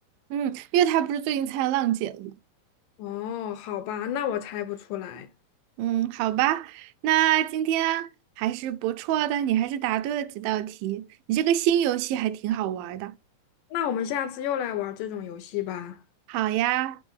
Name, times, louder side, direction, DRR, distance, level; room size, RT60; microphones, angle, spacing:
voice 1, 0.3-2.4 5.8-8.1 8.4-13.1 16.3-17.0, right 12 dB, 80° right, 2.2 m, -25 dB
voice 2, 3.0-5.3 13.7-16.0, left 10 dB, 80° left, 2.1 m, -31 dB
5.4 x 3.4 x 5.2 m
omnidirectional pair, 4.2 m